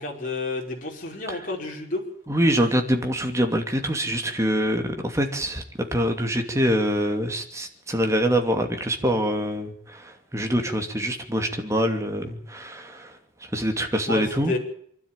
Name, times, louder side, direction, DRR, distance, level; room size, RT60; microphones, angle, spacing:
voice 1, 0.0-2.0 14.1-14.6, left 3 dB, 45° left, 0 dB, 5.5 m, -30 dB
voice 2, 2.3-5.6 5.9-14.5, equal, 15° right, 5 dB, 2.6 m, -25 dB
24.5 x 12.5 x 9.1 m, 0.66 s
head